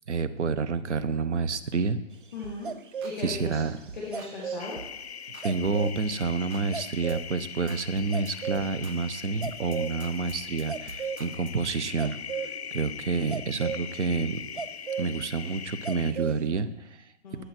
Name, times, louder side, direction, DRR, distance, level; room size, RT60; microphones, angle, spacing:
voice 1, 0.1-2.0 3.2-3.8 5.4-14.4 15.0-17.0, right 4 dB, 60° right, 12 dB, 1.2 m, -29 dB
voice 2, 2.3-2.7 3.0-3.6 3.9-4.8 17.2-17.4, left 3 dB, ahead, -4 dB, 0.6 m, -37 dB
sound 1, 2.4-2.7 3.0-3.5 3.9-4.4 4.8-5.0 5.3-5.9 6.2-6.7 7.1-7.4 7.7-11.6, right 5 dB, 85° right, 1.6 m, -47 dB
sound 2, 2.6-3.2 4.1-4.6 5.4-6.0 6.7-7.2 8.0-8.7 9.4-10.2 10.7-11.2 12.0-12.7 13.0-15.1 15.8-16.4, right 6 dB, 40° right, 0.5 m, -34 dB
sound 3, 4.6-16.1, left 8 dB, 55° left, 0.6 m, -41 dB
20.5 x 8.2 x 4.5 m, 0.96 s
hypercardioid pair, 180°, 40 cm